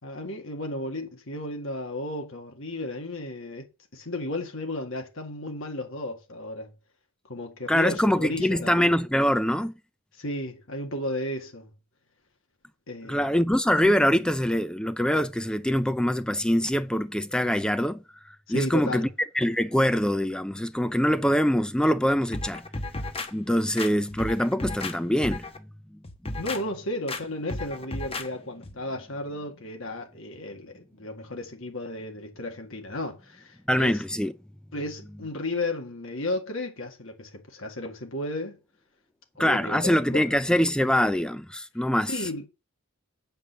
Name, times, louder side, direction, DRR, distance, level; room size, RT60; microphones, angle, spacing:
voice 1, 0.0-6.7 7.3-8.8 10.1-11.7 12.9-13.4 18.5-19.1 26.4-34.0 34.7-38.6 39.3-40.3 42.1-42.5, left 1 dB, 65° left, 1.9 m, -34 dB
voice 2, 7.7-9.7 13.1-18.0 18.5-19.1 19.3-22.7 23.3-25.5 33.7-34.3 39.4-42.1, equal, 5° left, 0.5 m, -24 dB
sound 1, 22.3-23.3 23.8-25.0 25.2-25.6 26.0-26.6 27.1-27.2 27.5-28.3 28.6-28.7, left 2 dB, 25° left, 1.1 m, -33 dB
8.4 x 5.4 x 6.8 m
head